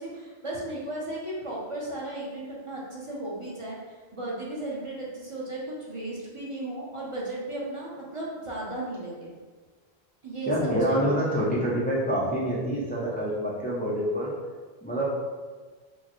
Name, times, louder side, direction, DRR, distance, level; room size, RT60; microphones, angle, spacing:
voice 1, 0.0-9.3 10.2-11.2 13.1-13.4, right 1 dB, 35° right, -6 dB, 0.7 m, -35 dB
voice 2, 10.5-14.3 14.8-15.1, equal, 15° left, -6 dB, 0.4 m, -26 dB
4.5 x 2.0 x 3.0 m, 1.4 s
omnidirectional pair, 1.0 m